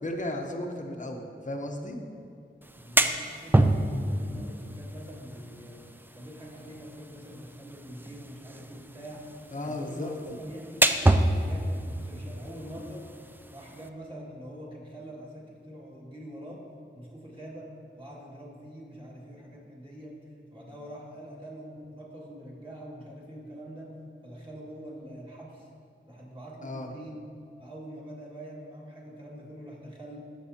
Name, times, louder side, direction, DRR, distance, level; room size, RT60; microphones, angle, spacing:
voice 1, 0.0-2.0 9.5-10.2 26.6-26.9, left 1 dB, 40° left, 3 dB, 0.9 m, -34 dB
sound 1, 2.6-13.9, right 1 dB, 10° right, 0.4 m, -29 dB
voice 2, 2.7-5.8 6.1-9.3 9.6-13.0 13.5-16.6 16.9-20.2 20.5-24.0 24.2-25.7 26.1-27.2 27.6-30.2, equal, 25° right, -5 dB, 2.0 m, -44 dB
13.5 x 6.1 x 2.8 m, 2.5 s
wide cardioid pair, 65°, 20 cm